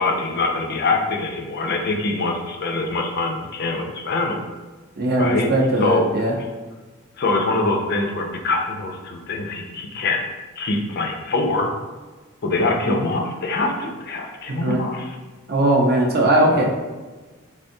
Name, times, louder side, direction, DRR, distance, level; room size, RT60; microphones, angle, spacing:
voice 1, 0.0-4.4 5.2-5.5 5.8-6.1 7.2-10.2 10.6-11.7 12.4-15.2 16.4-16.7, left 3 dB, 50° left, 2 dB, 0.4 m, -24 dB
voice 2, 5.0-6.3 14.5-14.8 15.5-16.7, right 1 dB, 45° right, 0 dB, 0.6 m, -19 dB
3.5 x 3.4 x 2.6 m, 1.3 s
head